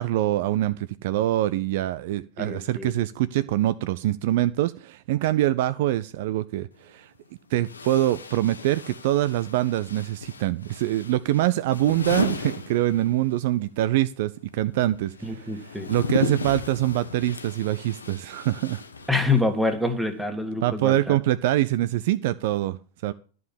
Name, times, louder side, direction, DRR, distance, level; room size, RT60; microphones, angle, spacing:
voice 1, 0.0-7.1 7.5-15.5 15.9-18.8 20.6-22.8 23.0-23.1, right 14 dB, 50° right, 14 dB, 0.4 m, -24 dB
voice 2, 2.4-2.9 15.2-15.9 19.1-21.2, left 3 dB, ahead, 6 dB, 1.8 m, -26 dB
sound 1, 6.7-6.8 7.6-13.4 13.7-19.6, left 4 dB, 75° left, 1.0 m, -34 dB
11.0 x 5.4 x 7.1 m, 0.39 s
figure-of-eight pair, 90°, 0 cm